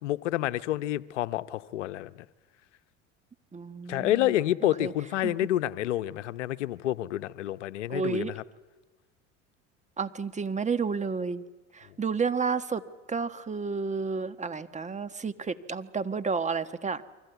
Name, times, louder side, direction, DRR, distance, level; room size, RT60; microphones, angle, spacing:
voice 1, 0.0-2.1 3.9-8.4, left 13 dB, 80° left, 14 dB, 0.9 m, -28 dB
voice 2, 3.5-4.3 4.8-4.9 5.2-5.3 7.9-8.3 10.0-11.4 11.7-12.8 13.1-17.0, right 5 dB, 20° right, 10 dB, 1.5 m, -31 dB
28.0 x 24.0 x 8.2 m, 1.2 s
hypercardioid pair, 80°, 35 cm